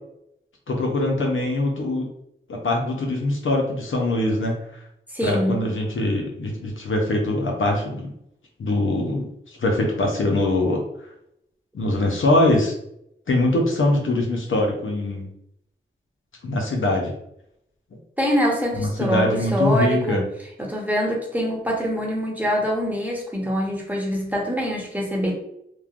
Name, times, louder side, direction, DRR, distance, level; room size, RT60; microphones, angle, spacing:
voice 1, 0.7-2.1 2.5-4.6 5.2-8.1 8.6-9.3 9.6-10.8 11.7-12.7 13.3-15.3 16.4-17.1 18.8-20.2, left 2 dB, 80° left, 0 dB, 0.6 m, -22 dB
voice 2, 5.1-5.8 18.2-20.3 20.6-25.3, equal, 10° right, -2 dB, 0.9 m, -24 dB
3.1 x 2.1 x 2.4 m, 0.75 s
cardioid pair, 40°, 20 cm